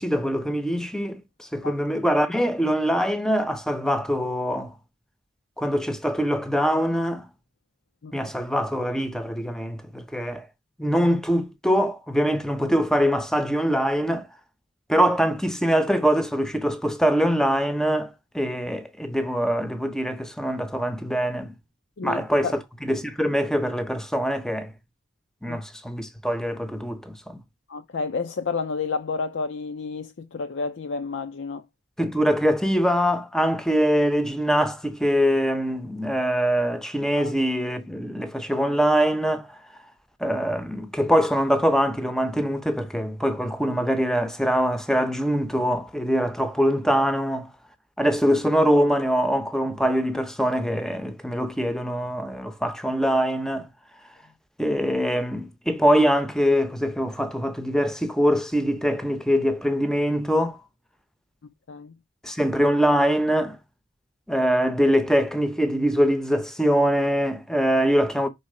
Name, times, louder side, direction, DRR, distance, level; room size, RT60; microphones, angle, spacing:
voice 1, 0.0-4.7 5.6-7.3 8.1-10.5 10.8-14.3 14.9-21.5 22.0-22.5 22.8-24.7 25.4-27.4 32.0-39.5 40.2-47.5 48.0-53.7 54.6-60.6 62.2-63.6 64.3-68.3, equal, 5° left, 0.7 m, -23 dB
voice 2, 22.0-22.5 25.5-25.6 27.7-31.6 37.2-37.3 61.7-61.9, left 4 dB, 65° left, 0.5 m, -30 dB
5.4 x 4.0 x 4.9 m
head